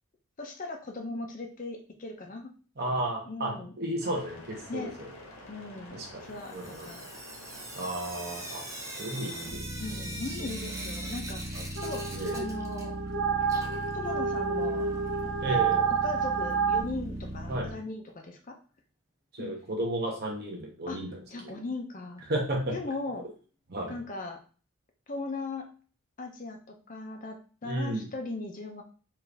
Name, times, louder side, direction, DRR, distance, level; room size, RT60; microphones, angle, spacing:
voice 1, 0.4-2.5 3.3-3.8 4.6-4.9 5.5-7.0 9.8-13.0 13.9-14.8 15.5-18.6 19.4-19.6 20.9-21.0 21.3-22.2 22.7-23.2 23.9-24.4 25.1-25.7 26.2-28.8, left 3 dB, 35° left, 3 dB, 0.5 m, -38 dB
voice 2, 2.8-4.9 5.9-6.9 7.8-8.6 9.0-10.1 12.1-12.4 15.4-15.9 17.5-17.7 19.3-21.6 22.3-22.8 23.7-24.0 27.6-28.1, right 1 dB, 45° right, 0 dB, 1.0 m, -33 dB
sound 1, 4.0-17.7, right 1 dB, 75° left, 1.2 m, -41 dB
Sink (filling or washing) / Drip, 6.4-13.1 13.4-15.3 16.5-16.6 16.9-17.0 17.3-17.4 20.3-20.4 20.9-21.0 21.5-21.6 22.2-22.3 22.9-23.0 23.9-24.0, right 1 dB, 15° right, 0.5 m, -43 dB
sound 2, 11.8-16.8, right 6 dB, 65° right, 0.6 m, -29 dB
4.4 x 2.5 x 3.3 m, 0.38 s
head